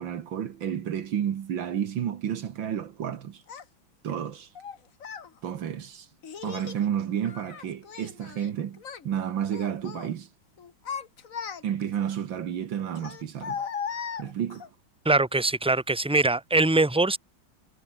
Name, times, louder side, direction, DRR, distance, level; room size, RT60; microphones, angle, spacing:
voice 1, 0.0-3.4 4.0-4.5 5.4-6.1 6.4-10.3 11.6-13.6 14.2-14.7, right 9 dB, 65° right, 2.0 m, -31 dB
Child speech kid speaking, 3.5-3.6 4.5-5.3 6.2-6.8 7.2-8.5 8.8-9.1 9.5-10.1 10.6-11.9 12.9-14.7, left 6 dB, 45° left, 1.7 m, -37 dB
voice 2, 15.1-17.2, right 2 dB, 5° right, 2.2 m, -22 dB
omnidirectional pair, 2.3 m